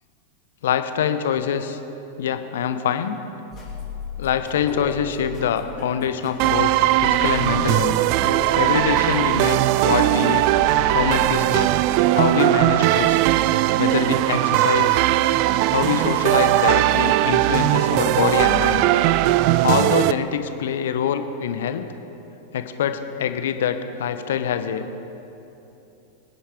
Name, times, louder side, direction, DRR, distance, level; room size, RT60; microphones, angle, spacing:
voice 1, 0.6-1.8 2.2-3.2 4.2-6.7 7.0-8.0 8.5-10.5 10.9-11.7 12.1-13.2 13.8-15.0 15.7-18.9 19.6-21.9 22.5-25.0, left 8 dB, 60° left, 9 dB, 0.9 m, -24 dB
sound 1, 3.5-11.4, left 5 dB, 30° left, 3.4 m, -35 dB
sound 2, 6.4-20.1, right 15 dB, 45° right, 0.4 m, -19 dB
22.5 x 10.0 x 4.5 m, 3.0 s
figure-of-eight pair, 90°, 0 cm